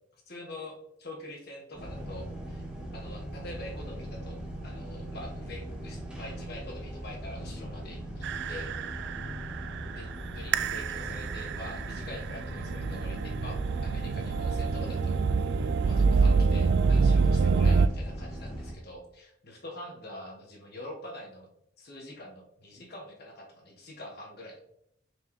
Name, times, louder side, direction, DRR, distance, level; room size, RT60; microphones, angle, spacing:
voice 1, 0.3-2.7 2.9-8.7 9.9-15.2 15.8-21.5 21.8-24.6, left 1 dB, 55° left, 0 dB, 1.4 m, -45 dB
sound 1, 1.7-18.7, equal, 5° right, 1.3 m, -40 dB
sound 2, 8.2-17.9, right 4 dB, 65° right, 0.3 m, -26 dB
6.4 x 4.6 x 3.2 m, 0.76 s
head